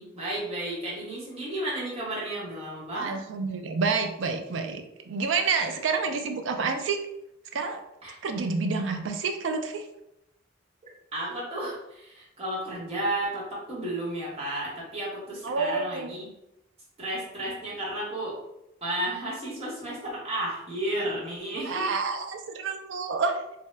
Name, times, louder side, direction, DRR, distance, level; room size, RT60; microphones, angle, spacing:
voice 1, 0.0-3.2 8.0-8.1 11.1-16.3 17.0-18.4 18.8-21.9, right 1 dB, 30° right, -6 dB, 1.1 m, -33 dB
voice 2, 2.9-7.0 7.5-7.8 8.2-9.8 15.4-16.1 21.6-23.4, right 4 dB, 75° right, 6 dB, 0.4 m, -28 dB
2.7 x 2.2 x 3.2 m, 0.84 s
head